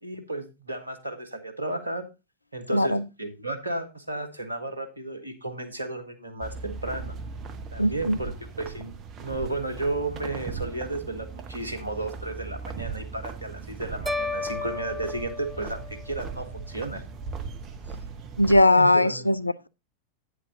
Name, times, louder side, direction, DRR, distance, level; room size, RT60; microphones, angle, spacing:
voice 1, 0.0-2.0 2.5-7.1 7.7-8.3 8.6-17.0 18.7-19.3, right 2 dB, 80° right, 1.5 m, -33 dB
voice 2, 2.7-3.0 7.8-8.2 18.4-19.7, left 1 dB, 85° left, 0.4 m, -20 dB
sound 1, 6.4-18.6, right 5 dB, 35° right, 1.1 m, -38 dB
sound 2, 14.1-16.3, left 3 dB, 5° right, 0.8 m, -33 dB
9.1 x 7.6 x 3.7 m
figure-of-eight pair, 90°, 0 cm